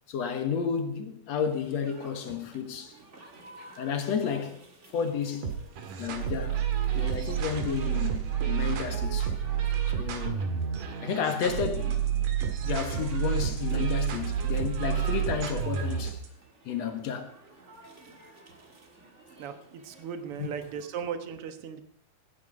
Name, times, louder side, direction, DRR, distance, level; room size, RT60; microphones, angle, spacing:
voice 1, 0.1-3.0 3.7-4.6 4.9-5.6 6.0-6.6 6.9-9.3 9.9-10.5 11.0-12.3 12.6-16.2 16.6-17.3 20.3-20.6, left 7 dB, 60° left, 2.4 m, -32 dB
sound 1, 1.4-20.9, right 2 dB, 30° right, 1.7 m, -52 dB
sound 2, 5.4-16.3, right 9 dB, 85° right, 3.4 m, -29 dB
voice 2, 19.4-21.8, right 7 dB, 55° right, 1.9 m, -37 dB
18.0 x 9.6 x 5.2 m
omnidirectional pair, 3.7 m